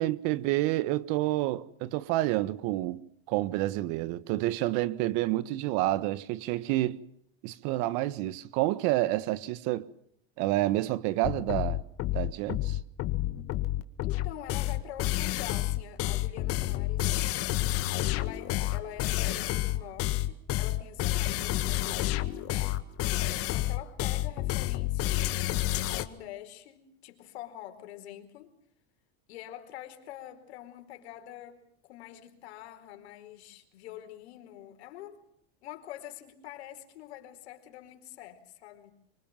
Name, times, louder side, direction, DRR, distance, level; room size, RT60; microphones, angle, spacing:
voice 1, 0.0-7.0 7.4-9.9 10.4-11.8 12.1-12.8, right 16 dB, 55° right, 1.5 m, -29 dB
sound 1, 11.2-26.0, left 16 dB, 45° left, 1.8 m, -29 dB
voice 2, 14.0-22.6 23.4-28.5 29.3-35.2 35.6-38.9, left 12 dB, 80° left, 4.7 m, -46 dB
25.0 x 23.0 x 7.6 m
supercardioid pair, 135°, 32 cm